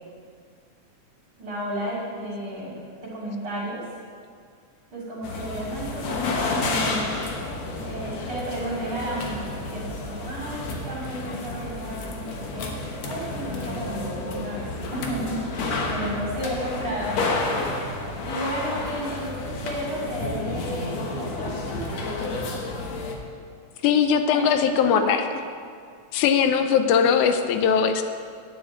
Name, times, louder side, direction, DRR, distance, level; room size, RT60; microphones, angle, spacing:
voice 1, 1.4-3.8 4.9-7.2 7.8-17.5 18.2-22.1 24.3-24.6 24.8-25.1, right 1 dB, 45° right, -8 dB, 3.1 m, -33 dB
sound 1, 5.2-23.2, left 2 dB, 65° left, 2.3 m, -30 dB
voice 2, 23.8-25.2 26.1-28.0, left 7 dB, 85° left, 8 dB, 2.1 m, -20 dB
9.5 x 7.3 x 8.7 m, 2.2 s
omnidirectional pair, 3.5 m